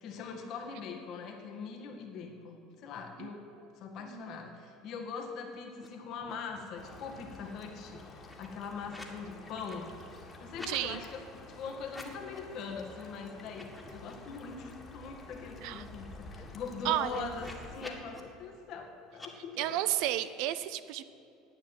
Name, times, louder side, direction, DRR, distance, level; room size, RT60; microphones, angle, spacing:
voice 1, 0.0-3.5 3.8-9.9 10.2-11.2 11.5-19.9, left 5 dB, 50° left, 3 dB, 1.8 m, -42 dB
sound 1, 5.7-5.9 6.1-6.8 7.1-9.2 9.5-10.8 11.8-12.5 12.9-13.1 13.4-14.8 15.2-15.3 15.5-18.2 19.1-19.3, left 1 dB, 10° left, 1.9 m, -51 dB
sound 2, 6.8-17.8, left 2 dB, 30° left, 2.1 m, -50 dB
voice 2, 10.7-11.0 15.6-15.8 16.8-17.3 19.6-21.0, right 13 dB, 60° right, 13 dB, 0.5 m, -32 dB
11.0 x 8.8 x 7.7 m, 2.7 s
figure-of-eight pair, 70°, 0 cm